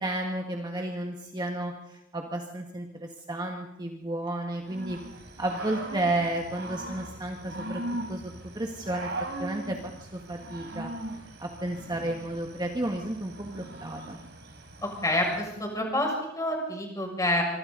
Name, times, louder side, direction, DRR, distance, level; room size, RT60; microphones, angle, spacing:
voice 1, 0.0-5.0 5.4-7.8 8.1-9.1 9.4-10.9 11.4-14.2, right 1 dB, 20° right, 1 dB, 1.9 m, -32 dB
Growling / Cricket, 4.7-15.6, right 2 dB, 60° right, 3.5 m, -40 dB
voice 2, 14.8-17.4, left 1 dB, 15° left, 0 dB, 6.8 m, -28 dB
26.0 x 25.0 x 4.1 m, 0.82 s
head